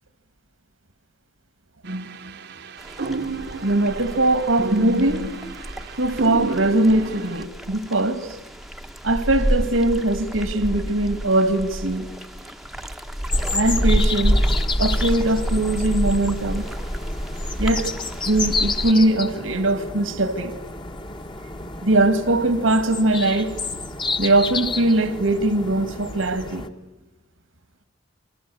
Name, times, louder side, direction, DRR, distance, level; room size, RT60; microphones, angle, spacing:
sound 1, 1.8-7.4, right 2 dB, 60° right, 1.1 m, -32 dB
sound 2, 2.8-18.9, equal, ahead, 1.0 m, -28 dB
voice 1, 3.6-5.3 6.0-8.4 9.0-12.1 13.5-14.4 14.8-16.6 17.6-17.9 18.3-20.5 21.8-23.5 24.2-26.7, right 2 dB, 90° right, 2.3 m, -21 dB
sound 3, 13.3-26.7, left 3 dB, 25° left, 1.4 m, -31 dB
26.5 x 25.5 x 8.0 m
head